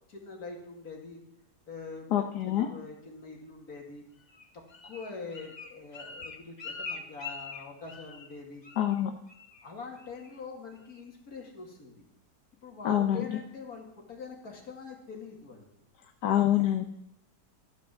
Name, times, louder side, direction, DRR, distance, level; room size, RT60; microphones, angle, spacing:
voice 1, 0.1-1.2 1.7-2.1 2.4-4.0 4.5-8.7 9.6-12.0 12.6-15.7, left 4 dB, 65° left, 0 dB, 2.8 m, -44 dB
voice 2, 2.1-2.7 8.8-9.1 12.8-13.2 16.2-16.9, left 12 dB, 85° left, 5 dB, 1.4 m, -25 dB
Bird, 4.3-8.4 8.6-9.0 9.3-9.6 10.0-10.4 10.8-10.9, left 4 dB, 30° left, 1.0 m, -43 dB
13.5 x 6.4 x 7.1 m, 0.82 s
omnidirectional pair, 1.7 m